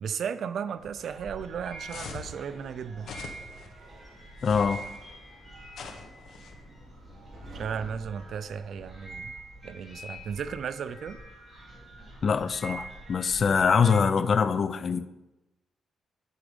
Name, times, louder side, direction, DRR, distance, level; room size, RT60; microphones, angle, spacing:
voice 1, 0.0-3.1 7.5-9.3 9.6-11.2, right 7 dB, 60° right, 0.5 m, -35 dB
sound 1, 0.8-14.0, right 2 dB, 10° right, 4.1 m, -46 dB
Subway metro underground, 1.3-8.9, equal, 35° right, 4.3 m, -52 dB
sound 2, 1.9-2.4 3.0-3.7 4.4-5.0 5.7-6.5, left 5 dB, 70° left, 1.1 m, -42 dB
voice 2, 4.4-4.8 12.2-15.1, left 6 dB, 40° left, 0.5 m, -24 dB
9.7 x 7.2 x 5.1 m
cardioid pair, 130°, 0 cm